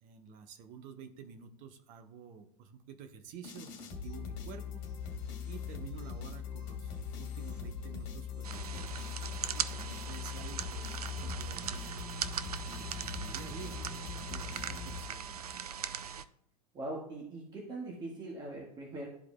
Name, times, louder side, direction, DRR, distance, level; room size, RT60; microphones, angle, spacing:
voice 1, 0.0-4.8 5.4-9.0 9.4-15.6, right 7 dB, 45° right, 8 dB, 1.0 m, -50 dB
sound 1, 3.4-15.5, left 6 dB, 50° left, 1.8 m, -41 dB
sound 2, 8.4-16.2, right 8 dB, 80° right, 0.5 m, -40 dB
voice 2, 16.7-19.1, right 2 dB, 20° right, -2 dB, 1.6 m, -41 dB
12.5 x 4.8 x 2.3 m, 0.76 s
figure-of-eight pair, 95°, 19 cm